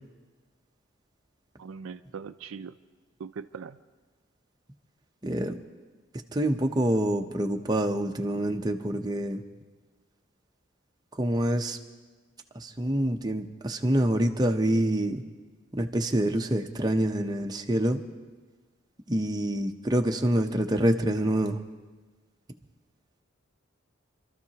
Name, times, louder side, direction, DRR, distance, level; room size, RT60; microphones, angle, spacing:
voice 1, 1.6-2.7 3.2-3.8, right 6 dB, 75° right, 11 dB, 0.4 m, -40 dB
voice 2, 5.2-5.6 6.3-9.4 11.1-11.8 12.5-15.2 15.7-18.0 19.1-21.6, right 1 dB, 20° right, 4 dB, 0.7 m, -26 dB
27.5 x 13.5 x 2.9 m, 1.3 s
head